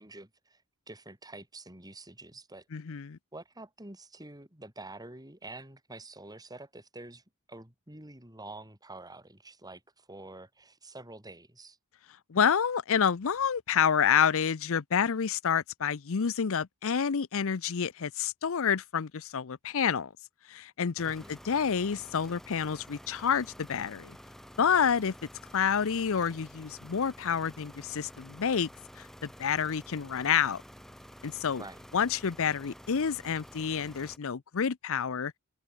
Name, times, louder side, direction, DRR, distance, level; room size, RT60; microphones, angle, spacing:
voice 1, 0.0-2.7 3.3-11.8 21.0-21.4 31.6-31.8, right 2 dB, 20° right, 7.4 m, -47 dB
voice 2, 2.7-3.2 12.3-20.1 20.5-24.2 24.6-25.1 25.5-28.7 29.0-30.6 31.2-31.6 31.9-35.3, left 7 dB, 65° left, 0.6 m, -28 dB
sound 1, 21.0-34.2, equal, ahead, 2.8 m, -50 dB
head